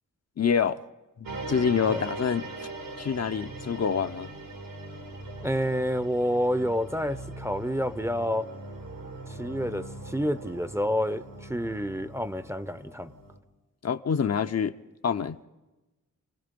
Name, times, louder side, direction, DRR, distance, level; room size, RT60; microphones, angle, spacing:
voice 1, 0.4-0.8 1.2-2.7 3.0-4.3 13.8-14.8 15.0-15.4, left 7 dB, 50° left, 0.7 m, -27 dB
sound 1, 1.2-13.4, right 2 dB, 90° right, 3.2 m, -41 dB
voice 2, 5.4-8.5 9.3-13.1, equal, 10° right, 0.6 m, -29 dB
30.0 x 20.0 x 5.2 m
wide cardioid pair, 85°, 33 cm